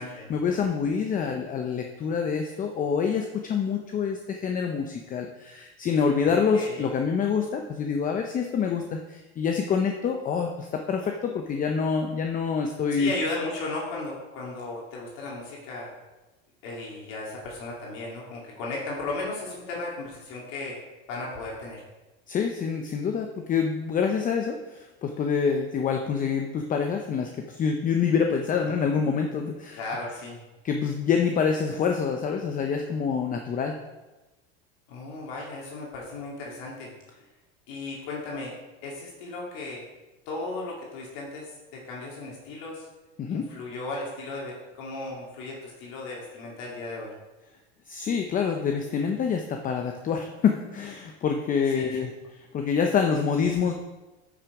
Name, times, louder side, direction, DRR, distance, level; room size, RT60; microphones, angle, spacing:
voice 1, 0.3-13.1 22.3-29.8 30.6-33.8 43.2-43.5 47.9-53.7, left 6 dB, 25° left, 4 dB, 0.7 m, -26 dB
voice 2, 12.9-15.9 16.6-20.8 21.1-21.8 29.7-30.4 34.9-36.9 37.7-38.5 38.8-39.8 40.3-42.9 43.3-47.1 51.7-52.0, left 2 dB, 60° left, -3 dB, 2.4 m, -35 dB
8.8 x 6.0 x 4.8 m, 1.1 s
supercardioid pair, 125°, 31 cm